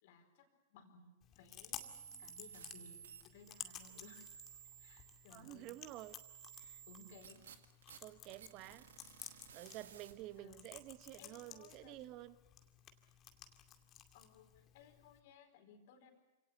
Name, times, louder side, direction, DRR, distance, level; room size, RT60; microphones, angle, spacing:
voice 1, 0.0-4.3 4.8-5.7 6.6-7.5 10.4-10.7 11.2-12.0 14.1-16.1, left 5 dB, 55° left, 5 dB, 4.5 m, -61 dB
Chewing mastication, 1.2-15.2, left 10 dB, 30° left, 2.3 m, -55 dB
sound 1, 1.8-10.4, right 9 dB, 70° right, 2.0 m, -57 dB
voice 2, 5.3-6.2 6.6-6.8 8.0-8.8 9.5-12.3, right 16 dB, 40° right, 13 dB, 1.1 m, -51 dB
28.0 x 18.0 x 8.2 m, 1.1 s
figure-of-eight pair, 100°, 0 cm